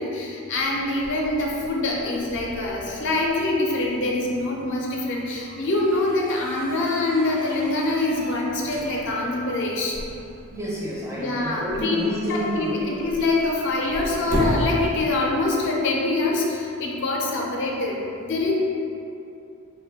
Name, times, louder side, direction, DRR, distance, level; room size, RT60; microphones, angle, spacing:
voice 1, 0.0-9.9 11.2-12.0 12.4-18.0 18.2-18.5, left 2 dB, 55° left, -2 dB, 0.4 m, -25 dB
sound 1, 0.6-15.6, equal, 70° right, 0.7 m, -36 dB
voice 2, 10.5-12.9, equal, 15° right, -6 dB, 0.4 m, -29 dB
3.0 x 2.2 x 3.4 m, 2.6 s
head